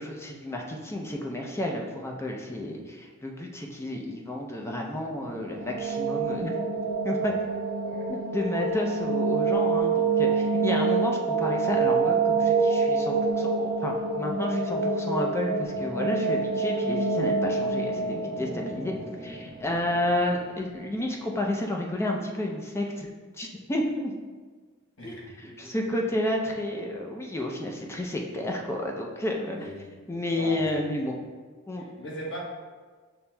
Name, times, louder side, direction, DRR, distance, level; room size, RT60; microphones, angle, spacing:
voice 1, 0.0-6.5 7.0-7.3 8.1-18.9 19.2-24.1 25.0-29.7 30.1-31.1 31.7-31.8, left 1 dB, 10° left, 0 dB, 0.5 m, -31 dB
sound 1, 5.3-20.2, right 4 dB, 85° right, 1.0 m, -27 dB
voice 2, 25.0-25.7 29.4-30.0 30.3-30.8 31.7-32.4, equal, 65° left, -4 dB, 1.2 m, -40 dB
6.9 x 3.0 x 2.2 m, 1.5 s
head